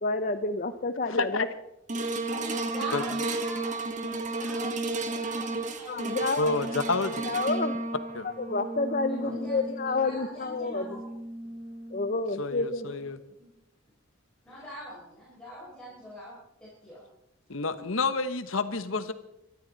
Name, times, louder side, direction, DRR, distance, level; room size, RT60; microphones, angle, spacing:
voice 1, 0.0-1.5 2.4-2.5 5.9-6.5 7.2-7.8 8.4-11.0 11.9-12.9, left 3 dB, 45° left, 9 dB, 0.7 m, -29 dB
voice 2, 1.1-1.5 2.9-3.0 6.4-7.2 8.1-8.3 9.2-9.4 12.4-13.2 17.5-19.1, left 3 dB, 90° left, 11 dB, 1.2 m, -29 dB
sound 1, 1.9-12.3 12.8-12.9, right 2 dB, 40° right, 1.6 m, -33 dB
voice 3, 2.3-6.3 6.5-7.0 9.1-9.6 10.0-11.1 13.4-13.5 14.4-16.3 16.6-17.0, equal, 5° left, -8 dB, 4.8 m, -44 dB
25.0 x 13.0 x 4.1 m, 0.85 s
head